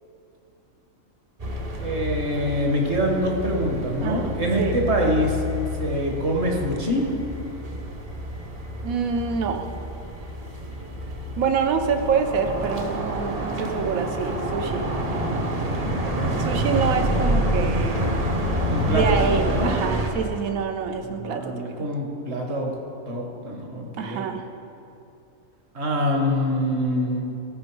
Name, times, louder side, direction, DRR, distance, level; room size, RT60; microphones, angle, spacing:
sound 1, 1.4-20.1, equal, 35° right, 0.7 m, -28 dB
voice 1, 1.8-5.4 5.8-7.0 18.7-19.7 21.0-22.7 23.1-24.3 25.7-27.3, equal, 55° right, 0 dB, 1.5 m, -25 dB
voice 2, 8.8-9.7 11.4-14.9 16.0-18.2 18.9-21.9 24.0-24.4, right 6 dB, 85° right, 6 dB, 1.2 m, -26 dB
14.5 x 5.2 x 4.7 m, 2.7 s
omnidirectional pair, 1.4 m